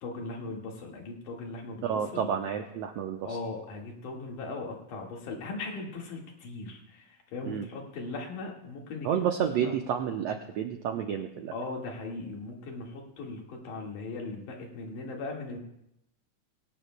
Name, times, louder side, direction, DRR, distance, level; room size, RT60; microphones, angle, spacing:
voice 1, 0.0-2.3 3.2-9.2 9.6-9.7 11.5-15.6, left 3 dB, 70° left, 0 dB, 3.4 m, -39 dB
voice 2, 1.8-3.4 7.4-7.7 9.0-11.5, right 8 dB, 85° right, 4 dB, 1.5 m, -30 dB
20.5 x 18.0 x 2.2 m, 0.81 s
omnidirectional pair, 3.9 m